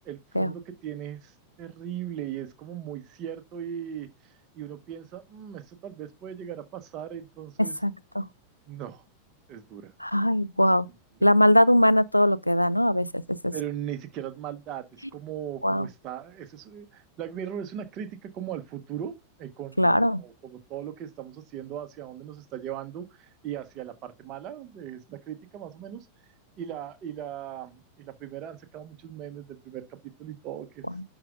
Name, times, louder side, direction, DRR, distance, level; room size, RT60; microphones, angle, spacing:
voice 1, 0.0-7.8 8.7-9.0 9.5-9.9 13.5-19.1 19.4-26.1 26.6-30.9, right 10 dB, 35° right, 1.3 m, -38 dB
voice 2, 7.6-8.2 10.0-10.9 11.2-13.5 15.6-15.9 19.8-20.2 30.9-31.0, equal, 90° left, 0.4 m, -21 dB
11.0 x 4.9 x 2.5 m
figure-of-eight pair, 90°, 0 cm